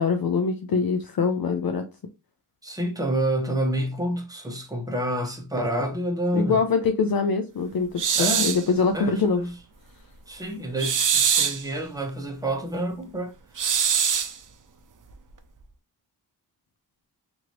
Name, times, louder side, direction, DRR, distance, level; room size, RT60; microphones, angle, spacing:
voice 1, 0.0-1.8 6.3-9.4, left 5 dB, 55° left, 0.5 m, -24 dB
voice 2, 2.6-6.6 8.1-8.6 8.9-9.5 10.3-13.7, right 1 dB, 10° right, 0.9 m, -28 dB
sound 1, 8.0-8.7 10.8-11.6 13.6-14.4, right 7 dB, 45° right, 0.5 m, -23 dB
2.9 x 2.6 x 2.9 m
cardioid pair, 45°, 43 cm